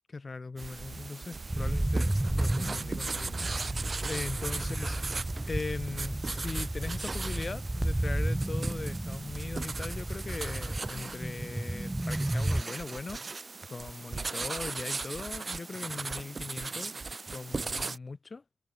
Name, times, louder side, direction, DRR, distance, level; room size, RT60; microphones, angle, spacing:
voice 1, 0.1-5.2 5.4-18.4, left 3 dB, 30° left, 4.5 m, -40 dB
sound 1, 0.6-18.0, right 3 dB, 30° right, 1.5 m, -38 dB
sound 2, 1.5-12.6, right 1 dB, 10° right, 0.4 m, -32 dB
wide cardioid pair, 170°, 0 cm